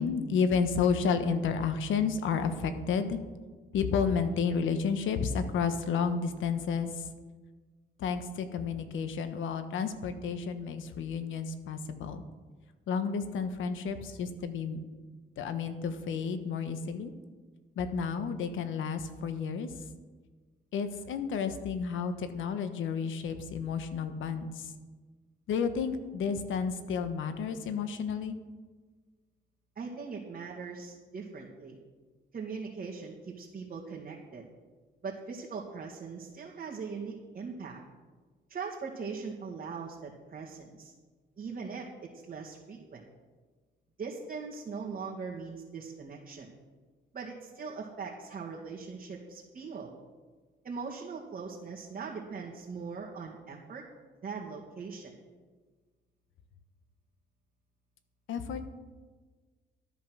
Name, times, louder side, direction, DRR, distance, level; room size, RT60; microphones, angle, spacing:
voice 1, 0.0-3.2 3.7-6.9 8.0-12.2 12.9-14.8 15.4-17.1 17.8-19.7 20.7-24.5 25.5-28.4 58.3-58.6, left 6 dB, 80° left, 10 dB, 1.3 m, -31 dB
voice 2, 29.8-31.8 32.3-34.4 35.0-37.8 38.5-40.9 41.4-43.0 44.0-46.5 47.1-49.9 50.6-53.8 54.2-55.1, right 5 dB, 45° right, -3 dB, 2.2 m, -40 dB
13.0 x 9.4 x 6.3 m, 1.4 s
cardioid pair, 90°, 20 cm